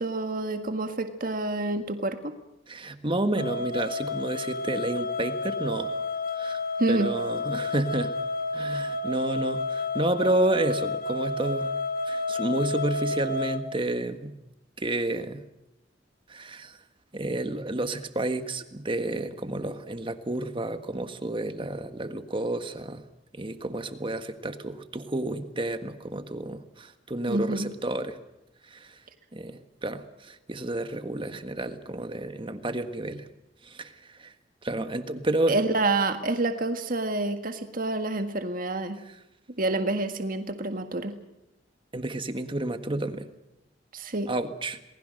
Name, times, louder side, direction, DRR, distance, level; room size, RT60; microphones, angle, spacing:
voice 1, 0.0-2.4 6.8-7.1 27.3-27.7 35.5-39.0 39.5-41.1 43.9-44.3, right 2 dB, 50° right, 7 dB, 1.8 m, -28 dB
voice 2, 2.7-5.9 6.4-6.6 6.9-8.1 8.5-11.7 12.1-14.3 14.8-15.4 16.3-16.8 17.1-23.0 23.3-28.2 28.7-28.9 29.3-33.3 33.6-34.3 34.6-35.6 41.9-43.3 44.3-44.8, right 1 dB, 30° right, 9 dB, 1.6 m, -30 dB
sound 1, 3.4-13.6, left 2 dB, 50° left, 1.7 m, -31 dB
28.0 x 20.5 x 6.5 m, 0.91 s
head